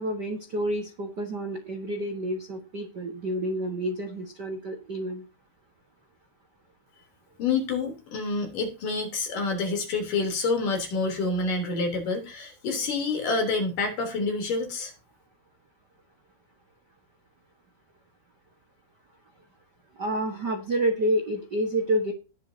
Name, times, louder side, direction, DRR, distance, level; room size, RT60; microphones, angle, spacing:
voice 1, 0.0-5.2 20.0-22.1, right 1 dB, 65° right, 5 dB, 1.0 m, -29 dB
voice 2, 7.4-14.9, left 3 dB, 55° left, 3 dB, 4.8 m, -28 dB
20.0 x 7.3 x 2.8 m, 0.31 s
omnidirectional pair, 4.6 m